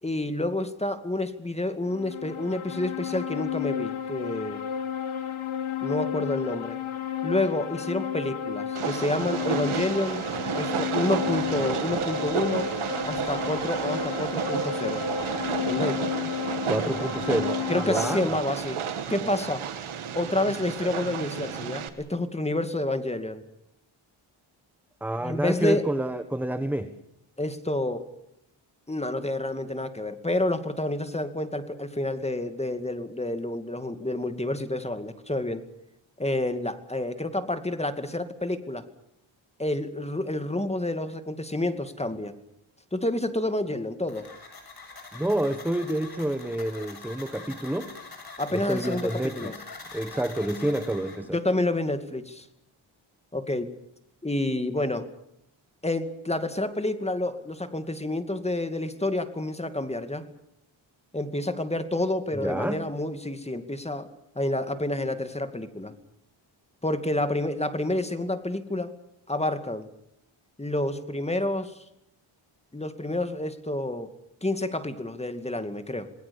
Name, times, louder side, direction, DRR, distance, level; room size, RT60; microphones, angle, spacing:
voice 1, 0.0-4.6 5.8-6.8 7.2-10.2 10.6-12.7 13.1-15.0 15.6-16.0 17.7-18.8 19.1-19.7 20.1-23.4 25.2-25.9 27.4-28.1 28.9-35.6 36.2-38.9 39.6-42.3 42.9-44.3 48.4-49.5 51.3-52.5 53.3-53.7 54.2-55.1 55.8-60.3 61.1-64.1 64.4-65.9 66.8-69.0 69.3-69.9 70.6-71.8 72.7-74.1 74.4-76.1, left 1 dB, 10° left, 9 dB, 2.4 m, -29 dB
sound 1, 1.9-18.2, left 8 dB, 70° left, 2.0 m, -32 dB
Train, 8.8-21.9, right 8 dB, 75° right, 2.4 m, -31 dB
voice 2, 16.7-18.3 25.0-26.9 45.1-47.9 48.5-49.6 49.9-51.4 62.3-62.8, right 1 dB, 5° right, 9 dB, 1.4 m, -28 dB
sound 2, 44.1-51.2, left 4 dB, 45° left, 7.5 m, -43 dB
28.0 x 20.0 x 7.2 m, 0.79 s
cardioid pair, 100°, 50 cm